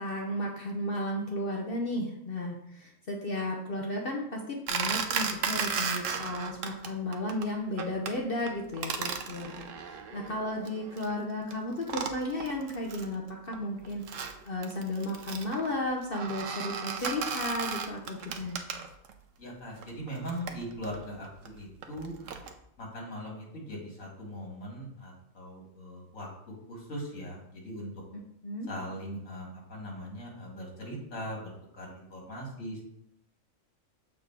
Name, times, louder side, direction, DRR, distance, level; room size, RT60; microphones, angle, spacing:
voice 1, 0.0-18.6 28.1-28.7, left 1 dB, 45° left, 0 dB, 1.0 m, -34 dB
sound 1, 4.7-6.9 7.1-7.4 7.8-8.1 8.5-11.1 11.5-11.6 11.8-13.1 13.5-19.1 19.8-22.5, right 6 dB, 65° right, 1.1 m, -35 dB
voice 2, 19.4-22.1 22.8-26.3 26.7-27.9 28.7-32.8, equal, 65° left, -2 dB, 2.7 m, -40 dB
7.2 x 4.4 x 4.7 m, 0.73 s
omnidirectional pair, 1.4 m